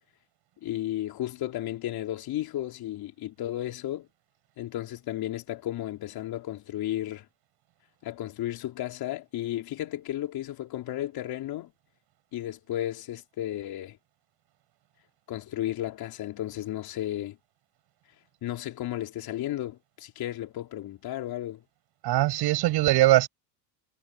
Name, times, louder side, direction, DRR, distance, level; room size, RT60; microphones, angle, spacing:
voice 1, 0.6-4.1 4.6-7.2 8.0-11.7 12.3-14.0 15.3-17.4 18.4-21.6, left 13 dB, 50° left, 4.1 m, -33 dB
voice 2, 22.0-23.3, right 16 dB, 50° right, 6.7 m, -21 dB
supercardioid pair, 105°, 49 cm